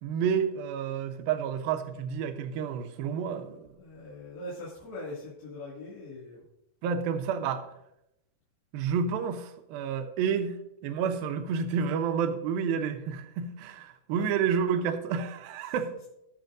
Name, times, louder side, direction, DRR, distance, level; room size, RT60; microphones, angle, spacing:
voice 1, 0.0-3.7 6.8-7.7 8.7-16.0, right 7 dB, 80° right, 7 dB, 2.5 m, -30 dB
voice 2, 3.8-6.4 14.2-14.3, left 1 dB, 85° left, -7 dB, 4.3 m, -41 dB
19.5 x 6.7 x 2.6 m, 0.84 s
omnidirectional pair, 4.5 m